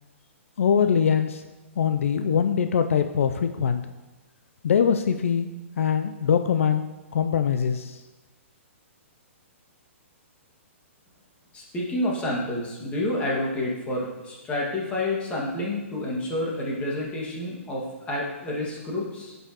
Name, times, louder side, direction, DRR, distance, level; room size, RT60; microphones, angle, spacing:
voice 1, 0.6-1.4 1.8-3.8 4.6-5.5 5.8-8.0, left 7 dB, 70° left, 8 dB, 0.4 m, -23 dB
voice 2, 11.5-19.3, left 1 dB, 15° left, -4 dB, 1.8 m, -29 dB
11.0 x 5.5 x 2.9 m, 1.2 s
hypercardioid pair, 135°, 7 cm